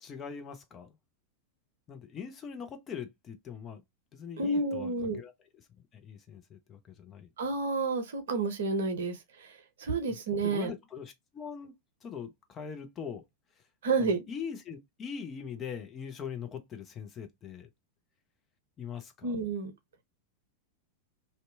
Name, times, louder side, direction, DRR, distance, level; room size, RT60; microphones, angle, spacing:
voice 1, 0.0-1.0 1.9-3.8 4.1-5.3 5.9-7.3 10.1-10.2 10.4-11.7 12.0-13.2 14.0-17.7 18.8-19.4, left 7 dB, 25° left, 0.6 m, -42 dB
voice 2, 4.4-5.2 7.4-9.5 9.8-10.7 13.8-14.2 19.2-19.7, right 3 dB, 60° right, 0.7 m, -30 dB
2.7 x 2.2 x 2.5 m
figure-of-eight pair, 90°, 0 cm